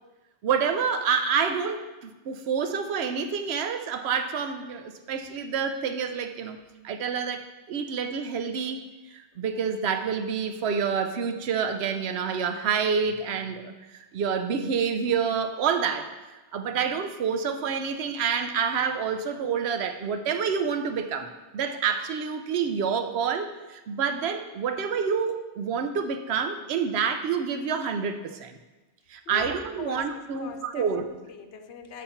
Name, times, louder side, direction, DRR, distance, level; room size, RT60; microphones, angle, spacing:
voice 1, 0.4-6.6 6.8-8.8 9.1-16.1 16.5-28.6 29.1-31.1, right 6 dB, 80° right, 8 dB, 0.8 m, -28 dB
voice 2, 29.3-32.0, left 7 dB, 85° left, 6 dB, 1.0 m, -42 dB
7.1 x 4.2 x 5.6 m, 1.1 s
omnidirectional pair, 1.1 m